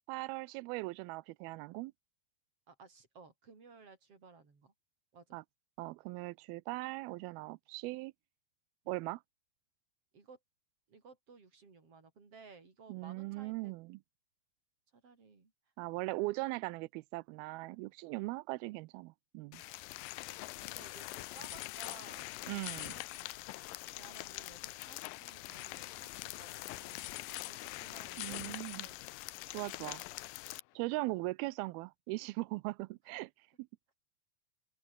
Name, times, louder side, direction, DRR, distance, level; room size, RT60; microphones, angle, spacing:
voice 1, 0.1-1.9 5.3-5.4 5.8-8.1 8.9-9.2 12.9-14.0 15.8-19.6 22.5-22.9 28.2-28.9 29.5-30.0 30.8-33.3 33.6-33.7, right 22 dB, 90° right, 2.5 m, -39 dB
voice 2, 2.7-4.7 5.1-5.4 8.8-9.0 10.1-10.4 10.9-13.7 14.9-15.5 20.2-23.3 23.9-29.0 29.5-29.7 31.1-31.3, right 4 dB, 40° right, 5.6 m, -58 dB
sound 1, 19.5-30.6, left 19 dB, 80° left, 2.2 m, -44 dB
open air
omnidirectional pair, 4.3 m